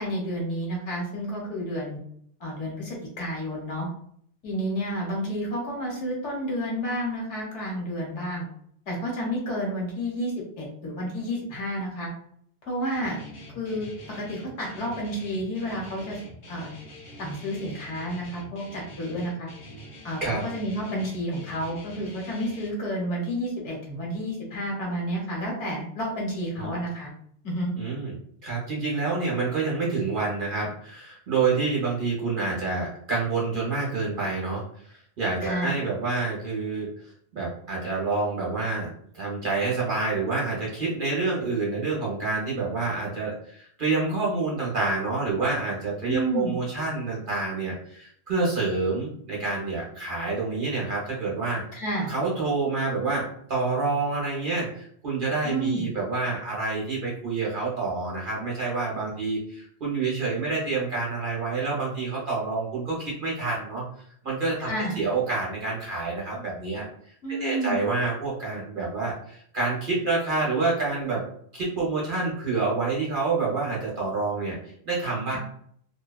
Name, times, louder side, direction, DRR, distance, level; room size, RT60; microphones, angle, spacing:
voice 1, 0.0-2.0 2.4-3.9 4.4-8.4 8.9-12.1 12.7-13.2 13.5-16.2 16.5-16.7 17.2-19.5 20.0-27.1 27.4-27.7 35.4-35.7 46.1-46.5 51.7-52.1 55.4-55.9 64.6-65.0 67.2-67.8 75.3-75.4, equal, 70° left, -3 dB, 1.2 m, -30 dB
Guitar, 12.9-22.7, left 1 dB, 45° left, 0.4 m, -45 dB
voice 2, 27.8-28.1 28.4-36.9 37.3-38.9 39.1-51.6 52.1-63.8 64.2-64.7 65.0-66.9 67.3-71.2 71.5-74.6 74.8-75.4, right 3 dB, 50° right, -4 dB, 0.8 m, -28 dB
2.7 x 2.1 x 2.3 m, 0.64 s
omnidirectional pair, 1.3 m